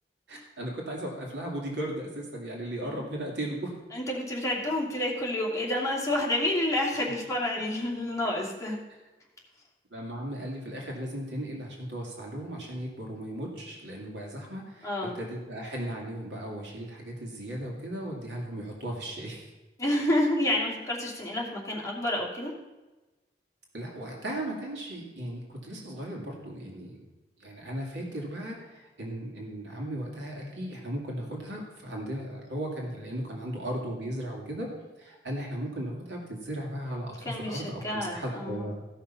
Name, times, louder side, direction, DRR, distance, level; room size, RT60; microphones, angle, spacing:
voice 1, 0.3-3.8 9.9-19.4 23.7-27.0 27.4-38.7, right 1 dB, 75° right, -1 dB, 2.5 m, -36 dB
voice 2, 3.9-8.8 14.8-15.1 19.8-22.5 37.2-38.7, left 1 dB, 20° left, -3 dB, 2.4 m, -29 dB
15.5 x 5.8 x 5.6 m, 1.1 s
head